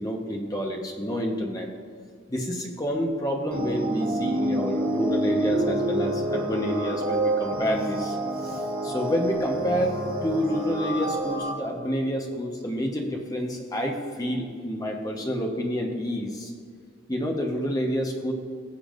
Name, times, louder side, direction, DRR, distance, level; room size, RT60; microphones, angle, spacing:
voice 1, 0.0-1.7 2.3-8.2 8.4-16.5 17.1-18.3, equal, 15° left, 1 dB, 1.1 m, -28 dB
sound 1, 3.5-11.5, right 1 dB, 75° right, 1.3 m, -28 dB
17.0 x 6.9 x 2.6 m, 2.1 s
head